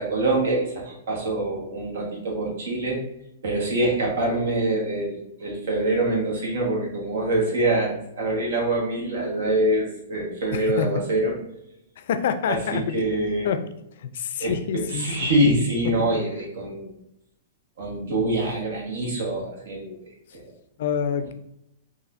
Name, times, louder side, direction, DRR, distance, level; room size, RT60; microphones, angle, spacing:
voice 1, 0.0-3.0 3.4-11.3 12.5-13.5 14.4-16.9 17.8-19.9 20.3-20.5, right 1 dB, 75° right, -2 dB, 1.3 m, -25 dB
voice 2, 10.5-10.9 12.0-12.9 13.4-13.6 14.0-15.1 20.8-21.3, left 8 dB, 65° left, 9 dB, 0.3 m, -26 dB
4.1 x 2.5 x 2.5 m, 0.82 s
hypercardioid pair, 130°, 0 cm